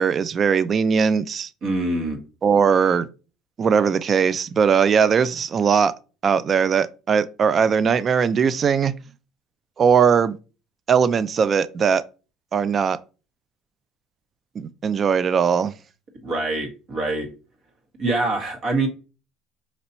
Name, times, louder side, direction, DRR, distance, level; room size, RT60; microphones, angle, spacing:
voice 1, 0.0-1.5 2.4-3.1 3.6-5.9 6.2-8.9 9.8-10.4 10.9-12.0 12.5-13.0 14.6-15.8, right 6 dB, 35° right, 0.3 m, -19 dB
voice 2, 1.6-2.2 16.2-17.3 18.0-18.9, right 2 dB, 50° right, 1.6 m, -24 dB
5.4 x 2.9 x 2.9 m
cardioid pair, 135°, 0 cm